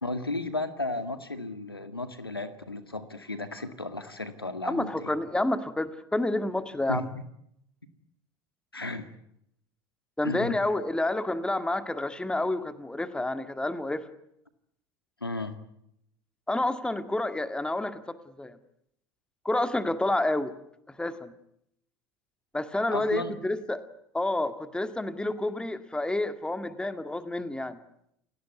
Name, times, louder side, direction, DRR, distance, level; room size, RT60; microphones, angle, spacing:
voice 1, 0.0-5.1 6.9-7.2 8.7-9.1 10.2-10.6 15.2-15.6 22.9-23.4, left 2 dB, 90° left, 10 dB, 2.0 m, -34 dB
voice 2, 4.7-7.1 10.2-14.1 16.5-18.6 19.4-20.6 20.9-21.3 22.5-23.8 24.1-27.8, left 2 dB, 5° left, 10 dB, 2.0 m, -29 dB
29.5 x 17.5 x 9.4 m, 0.76 s
figure-of-eight pair, 70°, 12 cm